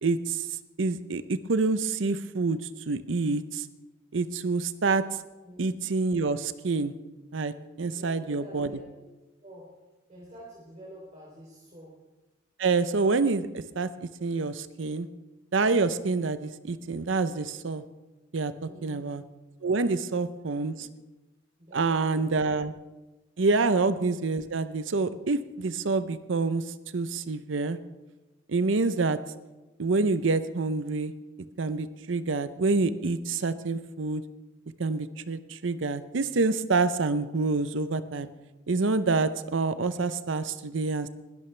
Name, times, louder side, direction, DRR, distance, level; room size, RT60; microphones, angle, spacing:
voice 1, 0.0-0.5 0.8-2.6 2.9-3.7 4.1-5.0 5.6-6.9 7.3-8.8 12.6-15.1 15.5-17.8 18.3-19.2 19.6-20.9 21.7-22.7 23.4-26.6 26.9-27.8 28.5-29.2 29.8-31.1 31.6-34.2 34.8-38.3 38.7-41.1, right 3 dB, 70° right, 13 dB, 0.7 m, -27 dB
voice 2, 7.9-9.1 9.4-9.7 10.1-11.9 18.7-19.0 20.7-20.9 21.6-22.5, right 1 dB, 35° right, -5 dB, 3.1 m, -48 dB
20.5 x 13.0 x 3.3 m, 1.1 s
head